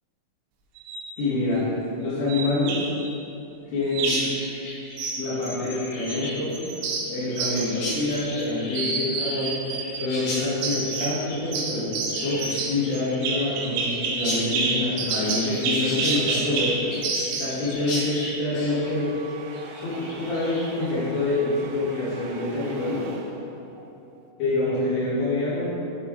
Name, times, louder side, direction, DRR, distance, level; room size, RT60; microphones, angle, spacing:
sound 1, 0.8-1.1 2.3-3.1 3.9-4.4 5.0-6.2 6.5-8.5 8.7-10.1 10.6-11.2 11.5-17.6, right 4 dB, 75° right, 2.8 m, -29 dB
voice 1, 1.2-1.7 2.0-2.9 3.7-4.2 5.2-6.6 7.1-9.6 10.0-16.9 17.4-19.1 19.8-23.0 24.4-25.6, left 2 dB, 85° left, -12 dB, 4.6 m, -26 dB
Chirp tweet, 4.0-20.9, left 1 dB, 60° left, 3.2 m, -36 dB
sound 2, 18.8-24.3, right 4 dB, 90° right, 3.3 m, -43 dB
11.0 x 4.7 x 3.8 m, 2.8 s
omnidirectional pair, 5.5 m